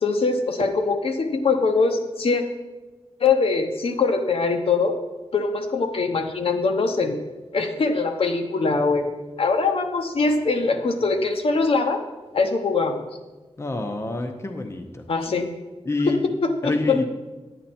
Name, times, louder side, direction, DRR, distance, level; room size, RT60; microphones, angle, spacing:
voice 1, 0.0-2.4 3.2-4.9 5.3-7.2 7.5-9.1 9.4-12.0 12.3-13.0 15.1-15.5 16.0-17.0, left 4 dB, 60° left, 5 dB, 1.0 m, -22 dB
voice 2, 13.6-15.0 15.9-16.3 16.6-17.0, left 2 dB, 25° left, 4 dB, 0.8 m, -27 dB
11.0 x 9.1 x 4.3 m, 1.2 s
wide cardioid pair, 150°, 11 cm